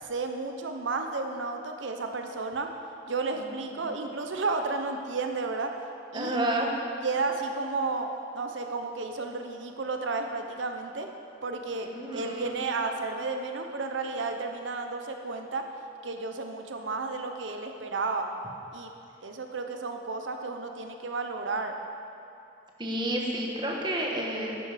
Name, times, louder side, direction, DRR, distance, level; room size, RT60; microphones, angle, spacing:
voice 1, 0.0-2.7 3.1-5.7 6.1-6.4 7.0-8.1 8.3-11.1 11.4-15.7 16.0-18.3 18.7-18.9 19.2-21.7, right 3 dB, 85° right, 5 dB, 0.8 m, -32 dB
voice 2, 6.1-6.7 11.8-12.6 22.8-24.6, right 1 dB, 25° right, -1 dB, 1.4 m, -30 dB
10.5 x 10.0 x 5.0 m, 2.7 s
head